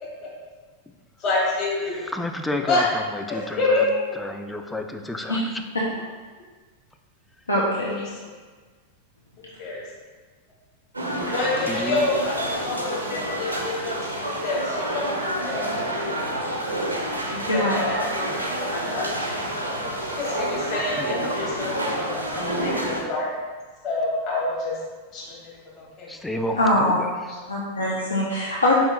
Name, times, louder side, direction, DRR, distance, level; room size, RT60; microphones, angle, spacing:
voice 1, 0.0-0.3 1.2-2.1 2.7-2.9 3.3-4.0 7.8-8.3 9.4-9.8 11.3-15.7 17.5-18.3 18.7-19.1 19.8-23.3 23.8-24.8 25.1-25.4 26.0-26.1 27.3-27.4, left 2 dB, 35° left, -6 dB, 1.4 m, -27 dB
voice 2, 2.0-3.8 4.2-5.6 11.6-12.1 21.0-21.7 26.1-27.1, left 1 dB, 5° left, 4 dB, 0.3 m, -31 dB
voice 3, 7.5-8.1 11.3-11.4 17.3-17.8 26.6-27.0 27.5-28.7, left 1 dB, 80° left, -5 dB, 0.6 m, -23 dB
sound 1, 10.9-23.0, right 1 dB, 80° right, 0.6 m, -28 dB
4.6 x 2.9 x 3.3 m, 1.4 s
figure-of-eight pair, 90°, 0 cm